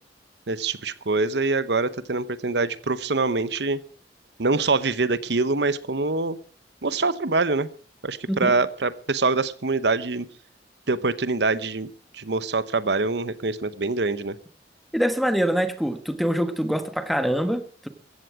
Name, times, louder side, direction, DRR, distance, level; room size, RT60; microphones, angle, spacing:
voice 1, 0.5-3.8 4.4-6.4 6.8-7.7 8.0-10.3 10.9-11.9 12.2-14.3, right 3 dB, 70° right, 1.0 m, -24 dB
voice 2, 14.9-17.9, equal, ahead, 1.3 m, -24 dB
16.0 x 15.0 x 4.9 m
head